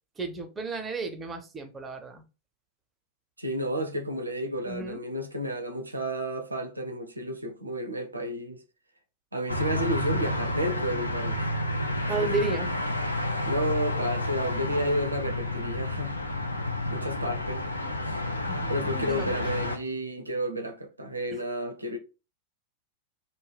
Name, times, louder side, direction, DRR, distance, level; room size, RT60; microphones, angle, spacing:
voice 1, 0.2-2.2 4.7-5.0 12.1-12.7 18.5-19.4, right 3 dB, 15° right, 0.5 m, -33 dB
voice 2, 3.4-8.6 9.3-11.4 12.1-12.6 13.5-16.2 16.9-17.6 18.0-18.2 18.7-22.0, equal, 80° right, 0.4 m, -31 dB
sound 1, 9.5-19.8, left 1 dB, 85° left, 0.3 m, -30 dB
2.2 x 2.0 x 3.2 m
figure-of-eight pair, 90°, 0 cm